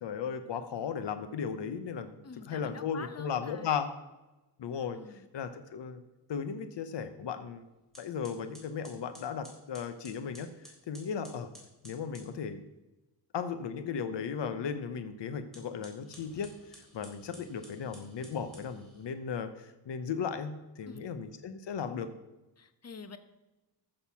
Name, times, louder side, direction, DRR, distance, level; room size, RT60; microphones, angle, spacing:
voice 1, 0.0-2.2 2.5-3.9 4.6-6.0 6.3-7.6 8.0-11.5 11.8-12.6 13.3-22.1, left 6 dB, 75° left, 10 dB, 0.9 m, -36 dB
voice 2, 2.2-3.7 4.9-5.3 20.8-21.1 22.6-23.2, left 5 dB, 35° left, 11 dB, 1.1 m, -47 dB
sound 1, 7.9-12.3 15.4-19.1, equal, ahead, 3.9 m, -55 dB
14.0 x 6.6 x 5.8 m, 1.0 s
wide cardioid pair, 120°, 43 cm